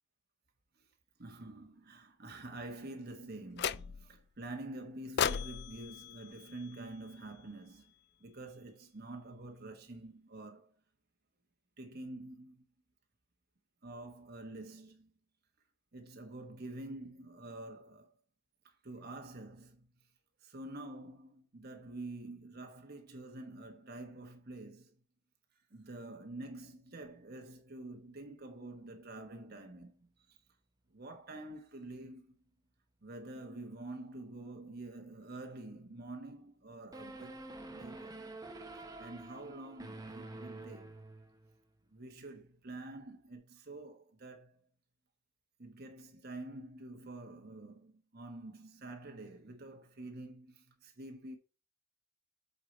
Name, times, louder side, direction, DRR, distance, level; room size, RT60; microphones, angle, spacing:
voice 1, 1.2-7.9 8.2-10.7 11.8-12.6 13.8-15.1 15.9-18.1 18.6-19.9 20.4-24.9 25.7-30.4 30.9-32.3 33.0-38.2 38.8-41.0 41.9-44.6 45.6-51.4, right 2 dB, 45° right, 1.2 m, -47 dB
sound 1, 3.6-4.2 5.2-7.4, left 8 dB, 50° left, 0.4 m, -37 dB
sound 2, 36.9-41.6, right 2 dB, 15° right, 1.0 m, -48 dB
8.1 x 4.7 x 4.4 m
head